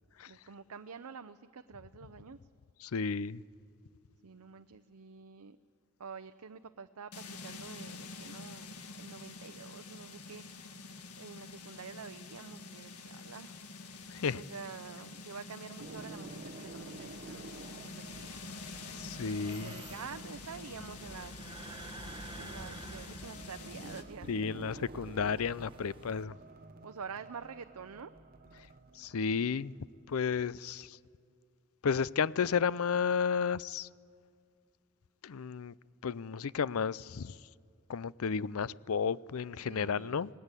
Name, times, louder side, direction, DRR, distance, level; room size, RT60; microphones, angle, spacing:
voice 1, 0.3-2.4 4.2-5.6 6.0-10.8 11.2-13.6 13.9-14.1 14.3-18.3 19.5-21.3 22.4-24.7 26.8-28.1 39.5-40.2, right 6 dB, 85° right, 0.6 m, -48 dB
voice 2, 2.8-3.4 14.2-14.4 19.0-19.7 24.3-26.4 29.0-29.7 30.1-31.0 31.8-33.9 35.2-35.7 36.0-37.3 37.9-40.3, left 6 dB, 70° left, 0.5 m, -32 dB
sound 1, 7.1-24.0, left 3 dB, 90° left, 1.9 m, -47 dB
sound 2, 14.8-15.2 15.7-30.3, right 3 dB, 40° right, 0.9 m, -52 dB
sound 3, 18.1-26.2, right 2 dB, 25° right, 1.4 m, -50 dB
26.5 x 19.0 x 8.3 m
head